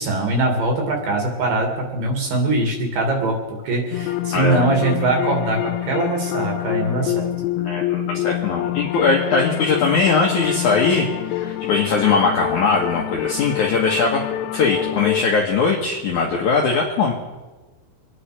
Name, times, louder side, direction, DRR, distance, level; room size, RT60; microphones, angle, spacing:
voice 1, 0.0-3.3 3.6-7.3, right 2 dB, 55° right, 2 dB, 3.4 m, -22 dB
sound 1, 3.9-15.3, left 14 dB, 85° left, 2.9 m, -26 dB
voice 2, 4.3-4.6 7.6-14.2 14.5-17.1, left 4 dB, 65° left, -1 dB, 2.0 m, -20 dB
26.0 x 9.9 x 4.8 m, 1.2 s
omnidirectional pair, 5.3 m